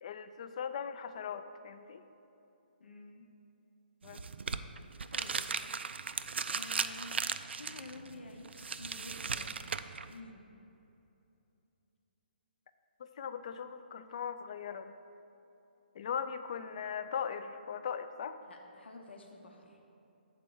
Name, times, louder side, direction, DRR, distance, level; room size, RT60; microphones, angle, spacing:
voice 1, 0.0-2.0 4.0-4.2 13.0-14.9 15.9-18.4, left 7 dB, 35° left, 10 dB, 0.3 m, -39 dB
voice 2, 2.8-3.3 5.1-5.5 6.5-7.3 7.5-9.6 10.1-10.5 18.4-19.8, left 2 dB, 80° left, 2 dB, 0.9 m, -50 dB
sound 1, 4.0-10.2, right 5 dB, 90° right, 0.3 m, -37 dB
7.4 x 4.5 x 7.0 m, 2.9 s
hypercardioid pair, 165°, 6 cm